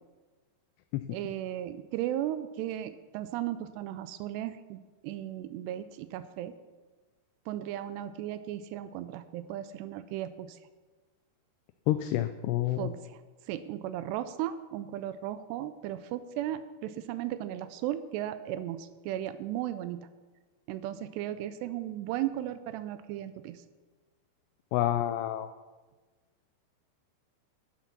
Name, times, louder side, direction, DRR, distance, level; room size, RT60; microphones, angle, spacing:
voice 1, 1.1-6.5 7.5-10.6 12.8-13.2 13.5-20.0 20.7-23.6, right 12 dB, 80° right, 12 dB, 2.5 m, -36 dB
voice 2, 11.9-12.9 24.7-25.5, left 13 dB, 85° left, 9 dB, 2.5 m, -28 dB
12.0 x 8.5 x 6.0 m, 1.3 s
omnidirectional pair, 5.2 m